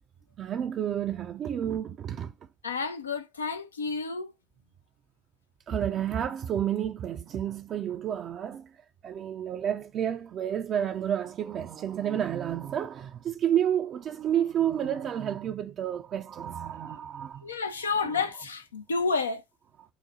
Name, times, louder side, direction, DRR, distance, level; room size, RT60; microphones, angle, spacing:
voice 1, 0.4-2.3 5.7-8.7 9.0-17.5 18.0-18.2, right 10 dB, 45° right, 0.3 m, -30 dB
voice 2, 2.6-4.3 17.4-19.4, left 4 dB, 85° left, 0.4 m, -30 dB
3.9 x 2.0 x 4.1 m
hypercardioid pair, 65°, 0 cm